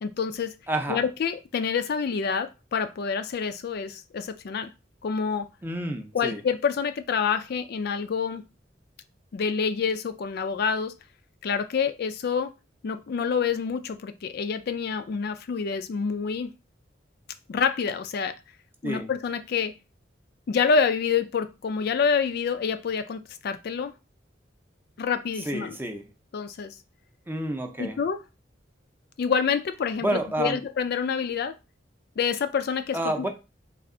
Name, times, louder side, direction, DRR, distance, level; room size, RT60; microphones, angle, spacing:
voice 1, 0.0-0.5 0.9-4.7 5.0-5.5 6.1-8.4 9.3-10.9 11.4-12.5 12.8-16.5 17.5-18.3 18.8-19.7 20.5-23.9 25.0-25.8 26.3-26.8 27.8-28.2 29.2-31.6 32.2-33.3, left 6 dB, 60° left, 0.4 m, -27 dB
voice 2, 0.7-1.0 5.6-6.4 18.8-19.1 25.4-26.1 27.3-28.0 30.0-30.6 32.9-33.3, right 1 dB, 10° right, 0.5 m, -29 dB
3.4 x 2.4 x 3.7 m
head